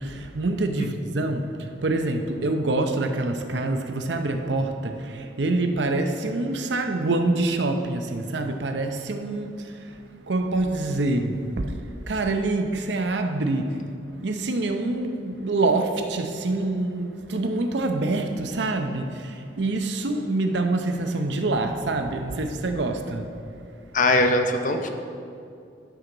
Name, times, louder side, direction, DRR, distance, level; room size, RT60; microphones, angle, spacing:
voice 1, 0.0-9.9 10.3-11.7 12.1-13.7 14.2-23.3, right 2 dB, 70° right, 5 dB, 0.7 m, -26 dB
voice 2, 23.9-24.9, left 2 dB, 45° left, 5 dB, 0.7 m, -21 dB
12.0 x 6.1 x 3.9 m, 2.5 s
head